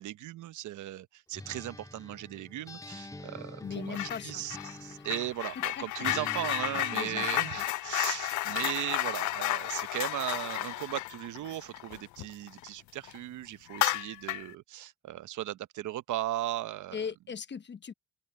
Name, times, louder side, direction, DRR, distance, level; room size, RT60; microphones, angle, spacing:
voice 1, 0.0-17.0, right 14 dB, 75° right, 0.9 m, -37 dB
Acoustic guitar, 1.3-5.4 6.0-7.6, left 2 dB, 10° left, 1.8 m, -46 dB
voice 2, 3.6-4.4 5.6-6.1 6.9-7.6 16.9-17.9, left 6 dB, 35° left, 1.0 m, -39 dB
sound 1, 3.9-4.2 4.5-12.7 13.0-13.2 13.7-14.5, left 17 dB, 75° left, 0.5 m, -32 dB
open air
cardioid pair, 90°, 30 cm